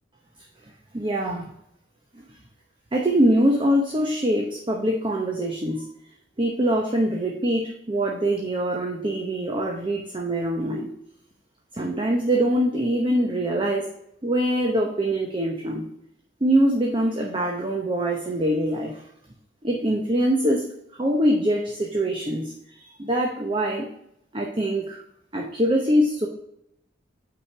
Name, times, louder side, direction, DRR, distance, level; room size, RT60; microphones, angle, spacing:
voice 1, 0.9-1.4 2.9-5.9 6.4-10.9 11.7-13.9 14.2-15.9 16.4-19.0 19.6-20.6 21.0-23.9 24.3-25.0 25.3-26.3, right 1 dB, 25° right, 0 dB, 0.9 m, -23 dB
5.8 x 5.0 x 5.9 m, 0.76 s
head